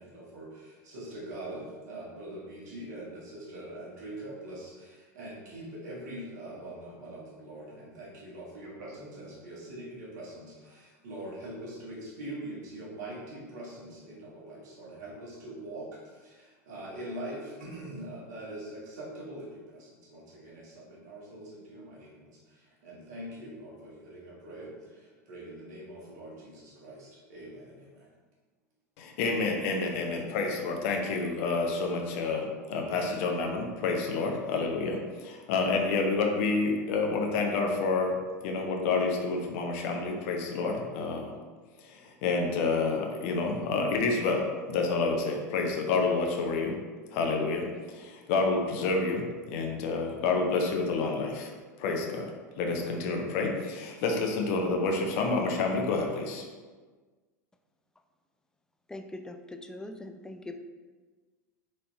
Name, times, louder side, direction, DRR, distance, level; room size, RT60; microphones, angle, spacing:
voice 1, 0.0-28.1, right 1 dB, 65° right, -5 dB, 1.3 m, -43 dB
voice 2, 29.0-38.1 38.4-41.3 41.8-46.7 47.1-51.5 51.8-52.3 52.6-56.4, left 3 dB, 55° left, 2 dB, 0.6 m, -29 dB
voice 3, 58.9-60.6, left 2 dB, 5° left, 6 dB, 0.3 m, -42 dB
4.2 x 3.1 x 2.8 m, 1.4 s
hypercardioid pair, 85°, 9 cm